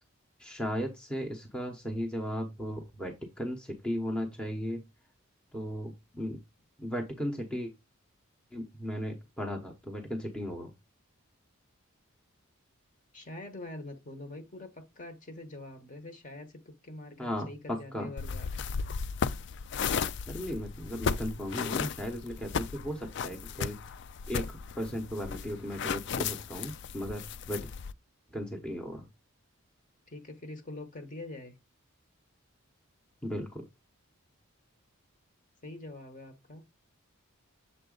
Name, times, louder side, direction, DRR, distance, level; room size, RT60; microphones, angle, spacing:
voice 1, 0.4-4.8 5.5-6.4 6.8-7.7 8.5-10.7 17.2-18.1 20.3-23.8 24.3-27.2 27.5-27.7 28.3-29.1 33.2-33.6, equal, 5° left, 0.9 m, -36 dB
voice 2, 13.1-18.7 30.1-31.5 35.6-36.6, left 2 dB, 35° left, 1.2 m, -44 dB
sound 1, 18.2-27.9, left 6 dB, 55° left, 0.3 m, -35 dB
7.0 x 3.9 x 3.8 m
head